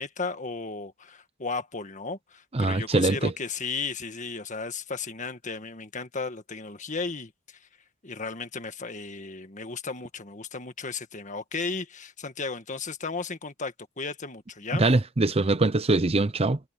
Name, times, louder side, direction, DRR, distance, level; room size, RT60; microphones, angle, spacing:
voice 1, 0.0-7.7 8.0-14.8, left 4 dB, 35° left, 1.7 m, -35 dB
voice 2, 2.5-3.3 14.7-16.6, right 2 dB, 30° right, 0.7 m, -23 dB
head